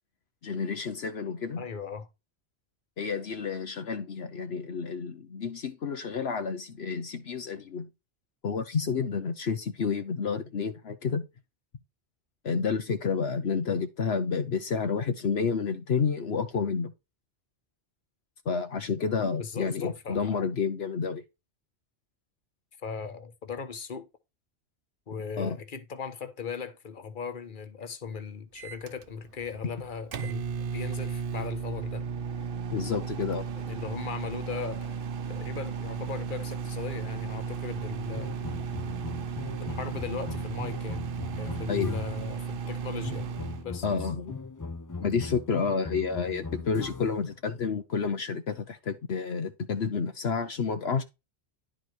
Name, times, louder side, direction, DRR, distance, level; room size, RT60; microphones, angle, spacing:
voice 1, 0.4-1.7 3.0-7.9 8.4-11.3 12.4-16.9 18.4-21.2 25.4-25.6 32.7-33.5 41.7-41.9 43.8-44.3 45.0-51.0, left 5 dB, 70° left, 1.2 m, -30 dB
voice 2, 1.6-2.1 19.4-20.2 22.8-24.1 25.1-32.0 33.6-35.0 35.3-38.3 39.6-41.0 41.3-43.3 43.6-43.8, left 6 dB, 50° left, 1.4 m, -38 dB
Microwave oven, 28.6-43.6, right 6 dB, 60° right, 0.9 m, -35 dB
sound 1, 38.1-42.4 43.0-47.3, left 4 dB, 20° left, 0.6 m, -39 dB
11.5 x 4.8 x 4.5 m
omnidirectional pair, 1.1 m